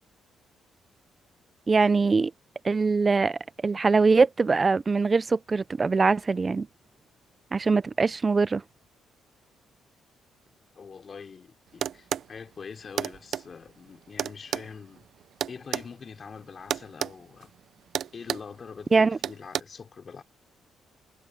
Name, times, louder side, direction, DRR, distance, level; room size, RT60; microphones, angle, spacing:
voice 1, 1.7-2.3 2.6-6.7 7.5-8.6 18.9-19.2, right 4 dB, 30° right, 0.5 m, -22 dB
voice 2, 10.7-15.1 15.5-17.5 18.1-20.2, left 5 dB, 45° left, 3.4 m, -44 dB
sound 1, 11.8-12.3 13.0-13.5 14.2-15.9 16.7-17.2 17.4-17.6 17.9-18.5 19.2-19.6, right 9 dB, 65° right, 0.7 m, -30 dB
cardioid pair, 90°, 0 cm